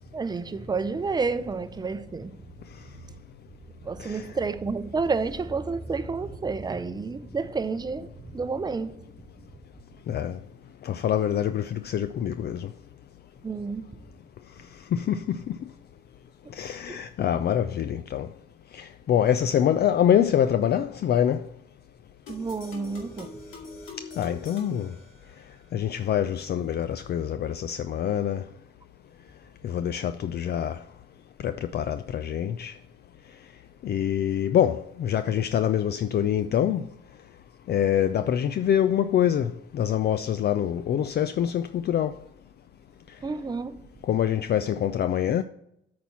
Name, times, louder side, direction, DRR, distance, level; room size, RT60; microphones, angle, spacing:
voice 1, 0.1-2.4 3.8-8.9 13.4-13.8 16.9-17.0 22.3-23.3 43.2-43.8, right 4 dB, 20° right, 0.6 m, -30 dB
voice 2, 10.1-10.4 10.8-12.7 14.9-15.6 16.5-18.3 18.7-21.5 24.0-24.9 25.7-28.5 29.6-30.8 31.4-32.7 33.8-36.9 37.7-42.2 44.1-45.4, left 10 dB, 55° left, 0.4 m, -25 dB
sound 1, 22.3-25.7, left 4 dB, 85° left, 2.2 m, -44 dB
8.7 x 4.3 x 7.1 m
cardioid pair, 90°, 20 cm